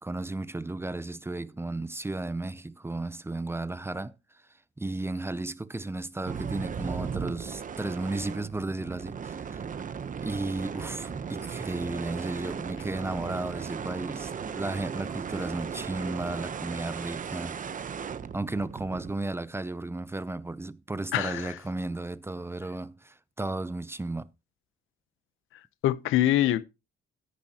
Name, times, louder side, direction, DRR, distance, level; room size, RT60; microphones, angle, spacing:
voice 1, 0.0-4.4 4.8-9.6 10.2-17.9 18.3-24.3, right 2 dB, 10° right, 0.6 m, -34 dB
sound 1, 6.3-19.1, right 7 dB, 40° right, 0.9 m, -36 dB
voice 2, 21.1-21.6 25.5-26.6, left 13 dB, 90° left, 0.8 m, -25 dB
12.5 x 10.5 x 2.9 m
cardioid pair, 90°, 20 cm